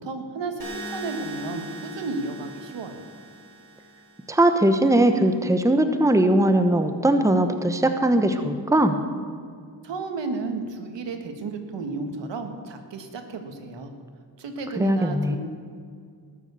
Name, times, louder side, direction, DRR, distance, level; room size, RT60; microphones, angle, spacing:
voice 1, 0.0-3.1 9.8-13.9 14.4-15.4, right 3 dB, 85° right, 6 dB, 1.8 m, -33 dB
sound 1, 0.6-4.6, right 2 dB, 55° right, 4.3 m, -40 dB
voice 2, 4.3-9.0 14.8-15.4, right 1 dB, 5° right, 8 dB, 1.0 m, -20 dB
19.5 x 7.2 x 6.9 m, 2.2 s
cardioid pair, 70°, 43 cm